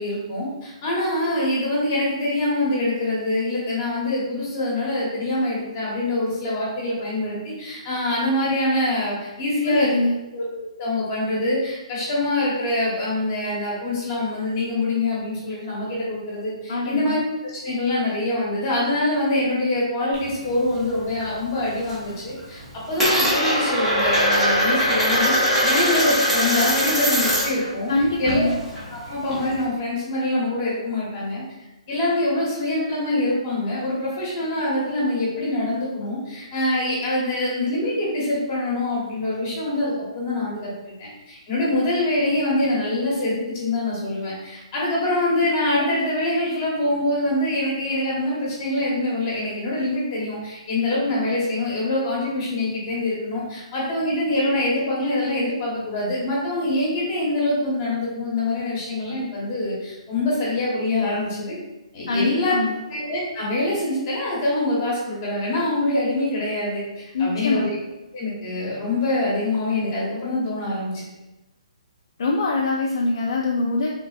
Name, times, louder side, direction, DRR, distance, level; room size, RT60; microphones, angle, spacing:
voice 1, 0.0-9.9 10.3-10.4 10.8-17.2 17.5-25.3 25.6-27.9 28.2-28.5 28.9-31.4 31.9-61.6 61.9-62.6 62.9-67.7 68.1-71.1, left 1 dB, 20° left, -6 dB, 1.0 m, -24 dB
voice 2, 9.7-10.1 16.7-17.2 27.9-28.6 62.1-62.8 67.1-67.6 72.2-73.9, left 2 dB, 45° left, -1 dB, 0.3 m, -23 dB
Coin (dropping), 20.1-21.3 21.6-22.1 22.4-27.7 27.9-29.6, equal, ahead, 0.6 m, -21 dB
3.7 x 3.3 x 2.4 m, 0.99 s
hypercardioid pair, 180°, 4 cm